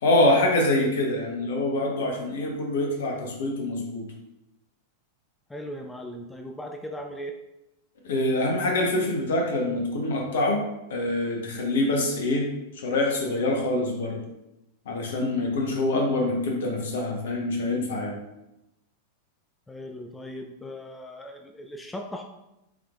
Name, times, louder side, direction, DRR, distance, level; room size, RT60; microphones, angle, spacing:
voice 1, 0.0-4.1 8.0-10.6 10.9-12.5 12.7-14.2 14.8-18.2, left 1 dB, 60° left, 1 dB, 1.0 m, -25 dB
voice 2, 5.5-7.3 19.7-22.2, equal, 10° left, 4 dB, 0.3 m, -38 dB
5.6 x 3.2 x 2.4 m, 0.91 s
figure-of-eight pair, 90°, 0 cm